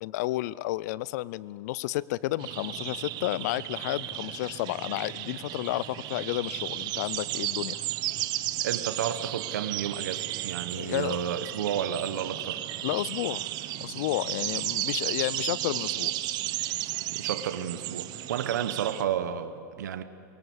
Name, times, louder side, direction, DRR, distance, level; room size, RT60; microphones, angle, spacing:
voice 1, 0.0-7.8 10.7-11.2 12.8-13.4 13.8-16.1, left 17 dB, 65° left, 21 dB, 0.4 m, -31 dB
sound 1, 2.4-19.0, right 15 dB, 50° right, 0.9 m, -34 dB
voice 2, 8.6-12.6 17.1-20.0, right 9 dB, 80° right, 11 dB, 1.0 m, -31 dB
22.0 x 17.5 x 7.1 m, 2.4 s
hypercardioid pair, 105°, 10 cm